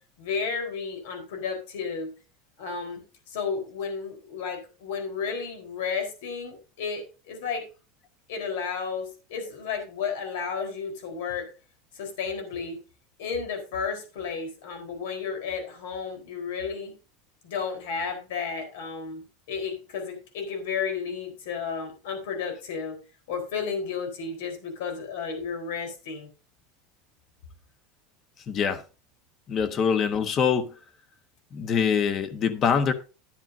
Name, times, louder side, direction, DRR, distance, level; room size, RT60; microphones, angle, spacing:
voice 1, 0.2-2.1 2.6-3.0 3.3-7.6 8.3-11.5 11.9-12.8 13.2-16.9 17.4-23.0 23.3-26.3, left 5 dB, 80° left, 4.3 m, -32 dB
voice 2, 28.5-28.8 29.5-30.7 31.5-32.9, left 6 dB, 30° left, 1.2 m, -24 dB
12.0 x 10.5 x 2.7 m
supercardioid pair, 155°, 0 cm